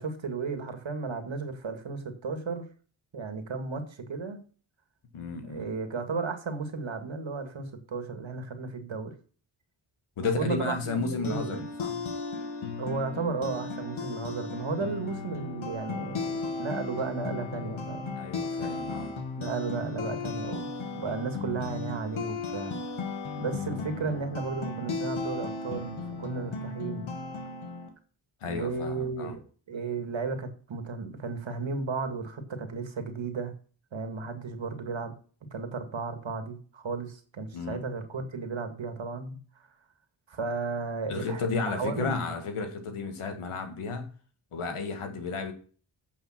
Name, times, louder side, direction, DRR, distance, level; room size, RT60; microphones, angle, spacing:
voice 1, 0.0-2.7 3.1-4.4 5.4-9.1 10.4-11.0 11.2-11.7 12.8-18.2 19.4-20.7 20.9-22.8 23.4-27.1 28.4-29.4 29.7-33.5 33.9-35.1 35.5-39.4 40.3-42.4 44.7-44.8, right 4 dB, 65° right, 7 dB, 2.1 m, -34 dB
voice 2, 5.1-5.7 10.2-12.0 18.2-19.1 28.4-29.4 37.5-37.8 41.1-44.1 44.5-45.5, left 4 dB, 85° left, 6 dB, 1.8 m, -33 dB
sound 1, 11.0-27.9, left 4 dB, 70° left, 1.9 m, -35 dB
8.8 x 5.6 x 6.0 m, 0.40 s
cardioid pair, 55°, 49 cm